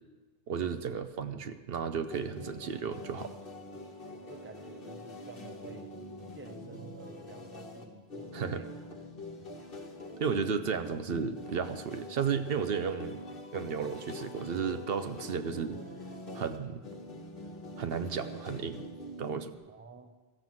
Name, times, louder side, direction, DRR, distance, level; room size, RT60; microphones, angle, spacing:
voice 1, 0.5-3.3 8.3-8.6 10.2-13.2 13.5-15.8 16.3-16.8 17.8-18.9 19.2-19.5, right 6 dB, 70° right, 9 dB, 0.9 m, -33 dB
sound 1, 2.1-19.5, left 1 dB, 60° left, 1.5 m, -44 dB
voice 2, 4.1-6.0 6.3-8.9 9.3-10.0 19.7-20.1, right 2 dB, 15° right, 6 dB, 0.7 m, -51 dB
14.0 x 7.7 x 7.1 m, 1.3 s
omnidirectional pair, 1.0 m